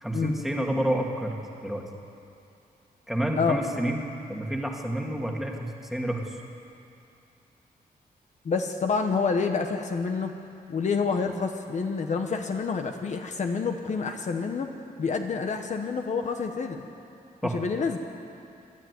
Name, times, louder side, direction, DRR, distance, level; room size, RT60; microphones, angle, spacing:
voice 1, 0.0-1.3 1.6-1.8 3.1-6.4 17.4-17.6, right 1 dB, ahead, 0 dB, 1.9 m, -29 dB
voice 2, 8.4-10.3 10.7-14.7 15.0-16.9 17.5-18.0, left 5 dB, 50° left, 5 dB, 1.1 m, -28 dB
25.5 x 12.5 x 9.5 m, 2.6 s
wide cardioid pair, 165°, 16 cm